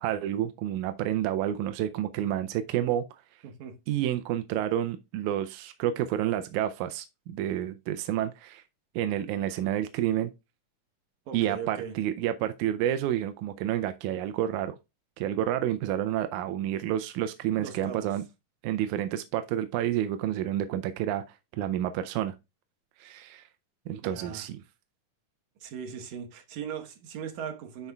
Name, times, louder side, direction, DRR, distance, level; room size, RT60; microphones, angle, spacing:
voice 1, 0.0-3.0 3.9-8.6 9.0-10.3 11.3-14.8 15.2-18.2 18.6-22.4 23.0-23.5 23.9-24.6, right 11 dB, 80° right, 1.8 m, -29 dB
voice 2, 3.4-3.8 11.3-12.0 17.6-18.2 24.0-24.5 25.6-27.9, right 7 dB, 65° right, 2.3 m, -39 dB
12.0 x 4.3 x 2.3 m
omnidirectional pair, 3.9 m